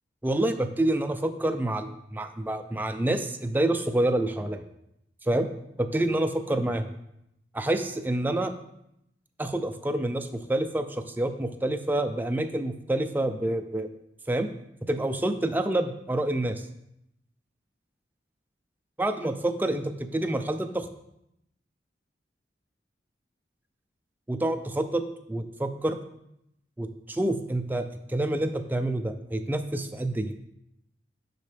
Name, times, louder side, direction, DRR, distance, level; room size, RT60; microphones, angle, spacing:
voice 1, 0.2-4.6 5.2-5.5 5.8-6.8 7.5-8.5 9.4-13.9 14.3-14.5 14.9-16.7 19.0-20.9 24.3-25.0 25.3-26.0 26.8-27.8 28.1-30.3, right 1 dB, 10° right, 7 dB, 0.4 m, -27 dB
6.7 x 5.3 x 3.3 m, 0.79 s
head